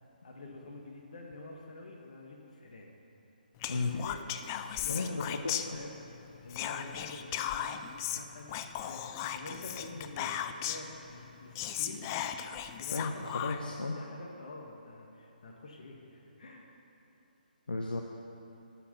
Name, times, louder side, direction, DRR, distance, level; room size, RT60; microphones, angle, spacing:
voice 1, 0.2-2.9 3.6-4.2 4.8-6.0 6.4-12.1 12.5-13.3 13.7-16.8, left 2 dB, 50° left, 0 dB, 1.7 m, -47 dB
Whispering, 3.6-6.1 6.5-10.9 11.3-11.4 11.6-13.8, left 10 dB, 20° left, 0.3 m, -37 dB
voice 2, 3.7-4.0 4.9-5.8 12.9-14.0 17.7-18.0, left 3 dB, 70° left, 1 dB, 0.8 m, -34 dB
11.0 x 6.0 x 6.8 m, 2.9 s
figure-of-eight pair, 140°, 5 cm